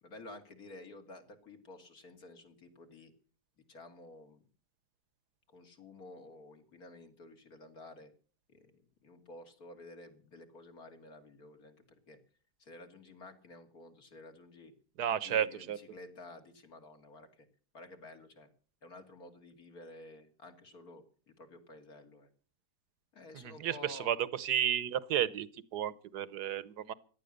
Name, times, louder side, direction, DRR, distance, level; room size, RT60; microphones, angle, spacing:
voice 1, 0.0-3.1 3.7-4.4 5.5-8.1 8.5-8.7 9.0-12.2 12.6-14.7 15.1-17.5 17.7-18.5 18.8-22.3 23.1-24.2, left 2 dB, 65° left, 5 dB, 3.2 m, -52 dB
voice 2, 15.0-15.8 23.3-26.9, right 10 dB, 85° right, 18 dB, 1.5 m, -33 dB
17.5 x 12.0 x 6.6 m, 0.40 s
omnidirectional pair, 1.7 m